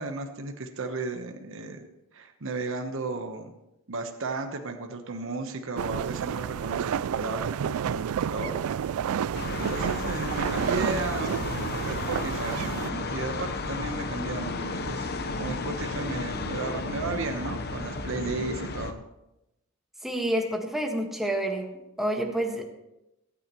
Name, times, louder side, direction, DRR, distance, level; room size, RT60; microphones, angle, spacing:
voice 1, 0.0-3.5 3.9-8.6 9.6-11.4 11.8-15.1 15.4-19.0, right 3 dB, 65° right, 4 dB, 1.1 m, -34 dB
sound 1, 5.8-12.9, right 8 dB, 85° right, 0.3 m, -30 dB
sound 2, 9.3-18.9, left 3 dB, 50° left, 1.0 m, -33 dB
voice 2, 20.0-21.7 22.0-22.6, right 1 dB, ahead, 1 dB, 1.6 m, -28 dB
23.0 x 9.8 x 3.1 m, 0.92 s
head